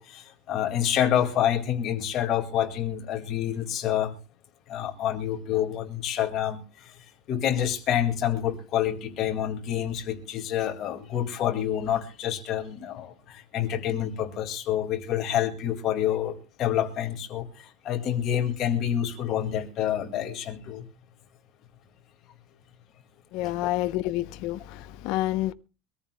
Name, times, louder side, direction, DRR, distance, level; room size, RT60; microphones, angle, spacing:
voice 1, 0.0-4.1 4.7-6.6 7.3-20.9 23.6-23.7, left 10 dB, 35° left, 2.0 m, -28 dB
voice 2, 23.3-25.5, left 15 dB, 50° left, 0.7 m, -28 dB
24.0 x 14.0 x 2.2 m
supercardioid pair, 165°, 0 cm